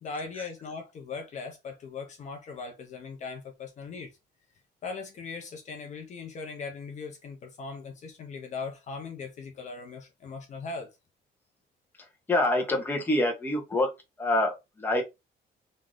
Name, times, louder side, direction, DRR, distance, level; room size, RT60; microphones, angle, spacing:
voice 1, 0.0-4.1 4.8-10.9, left 4 dB, 40° left, 0.6 m, -39 dB
voice 2, 12.0-13.9 14.2-15.0, left 1 dB, 10° left, 0.8 m, -26 dB
3.1 x 2.6 x 3.7 m
cardioid pair, 180°, 18 cm